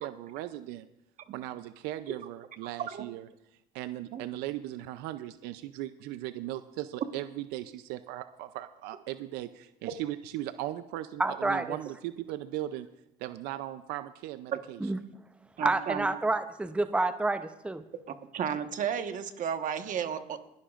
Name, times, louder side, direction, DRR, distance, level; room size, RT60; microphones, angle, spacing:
voice 1, 0.0-0.9 1.3-3.3 3.7-12.9 13.2-14.8, right 14 dB, 85° right, 12 dB, 0.5 m, -38 dB
voice 2, 11.2-11.8 14.8-15.0 15.6-17.8, right 2 dB, 5° right, 10 dB, 0.6 m, -29 dB
voice 3, 15.6-16.1 18.3-20.5, right 8 dB, 55° right, 7 dB, 1.3 m, -33 dB
20.5 x 11.5 x 2.5 m, 0.87 s
supercardioid pair, 90°, 16 cm